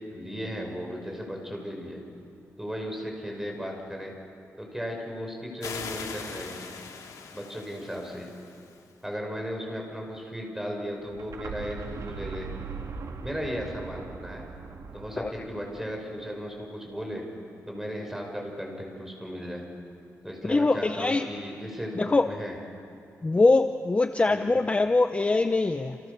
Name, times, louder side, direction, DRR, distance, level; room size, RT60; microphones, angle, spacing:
voice 1, 0.1-2.0 2.6-4.1 4.6-6.7 7.3-8.3 9.0-12.5 13.2-14.5 14.9-17.2 17.7-19.6 20.2-22.6 24.3-24.5, equal, 5° right, 1 dB, 5.9 m, -36 dB
sound 1, 5.6-8.9, left 5 dB, 85° left, 3.0 m, -41 dB
sound 2, 11.0-16.8, right 4 dB, 70° right, 2.1 m, -40 dB
voice 2, 20.4-21.3 22.0-22.3 23.2-26.0, left 3 dB, 20° left, 8 dB, 0.7 m, -23 dB
29.0 x 27.5 x 6.9 m, 2.4 s
wide cardioid pair, 125°, 6 cm